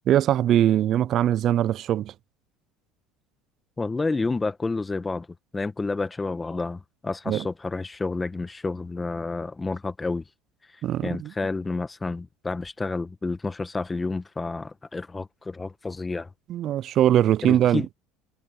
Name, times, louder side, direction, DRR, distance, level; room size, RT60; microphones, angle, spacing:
voice 1, 0.1-2.1 7.3-7.4 10.8-11.3 16.5-17.8, right 11 dB, 50° right, 0.5 m, -21 dB
voice 2, 3.8-5.3 5.5-10.2 11.0-16.3 17.4-17.9, left 3 dB, 15° left, 1.5 m, -30 dB
supercardioid pair, 90°, 0 cm